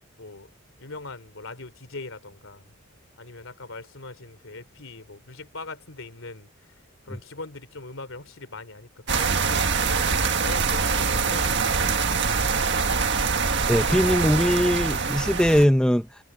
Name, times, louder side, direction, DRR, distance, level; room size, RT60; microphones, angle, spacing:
voice 1, 0.2-0.5 0.8-2.7 3.2-6.7 7.0-12.5, left 3 dB, 70° left, 3.1 m, -41 dB
sound 1, 9.1-15.7, right 5 dB, 55° right, 1.7 m, -24 dB
voice 2, 13.7-16.1, equal, 5° left, 1.0 m, -20 dB
head